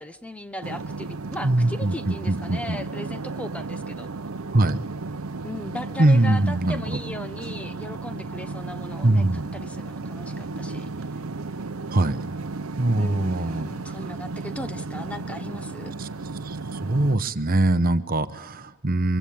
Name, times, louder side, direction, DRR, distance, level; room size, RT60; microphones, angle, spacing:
voice 1, 0.0-4.1 5.4-10.9 13.0-15.9, left 1 dB, 5° left, 9 dB, 1.0 m, -37 dB
sound 1, 0.6-17.2, right 3 dB, 80° right, 0.8 m, -34 dB
voice 2, 1.4-2.8 4.5-4.8 6.0-7.0 9.0-9.5 11.9-12.2 12.8-13.9 16.0-16.1 16.4-19.2, right 2 dB, 45° right, 11 dB, 1.0 m, -22 dB
26.0 x 24.0 x 8.6 m, 1.2 s
head